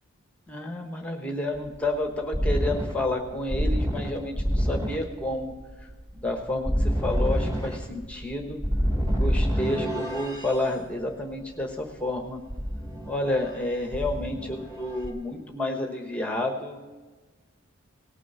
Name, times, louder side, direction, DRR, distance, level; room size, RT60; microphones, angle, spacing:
voice 1, 0.5-5.5 5.8-5.9 6.1-8.6 9.1-12.4 13.1-16.8, left 1 dB, 5° left, 3 dB, 1.0 m, -30 dB
sound 1, 1.5-10.6 12.5-13.6 13.9-15.1, equal, 15° right, 2.5 m, -27 dB
18.5 x 6.2 x 5.5 m, 1.3 s
head